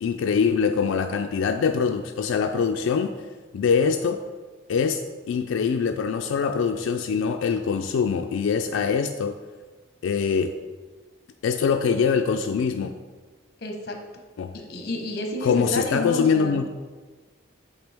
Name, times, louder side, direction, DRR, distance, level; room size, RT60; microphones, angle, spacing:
voice 1, 0.0-3.1 3.5-4.2 4.7-5.0 5.3-9.4 10.0-10.5 11.4-12.9 14.4-14.5 15.4-16.7, left 6 dB, 90° left, 6 dB, 0.3 m, -23 dB
voice 2, 13.6-14.0 14.7-16.6, left 1 dB, 50° left, 3 dB, 0.8 m, -30 dB
8.0 x 3.9 x 3.4 m, 1.4 s
head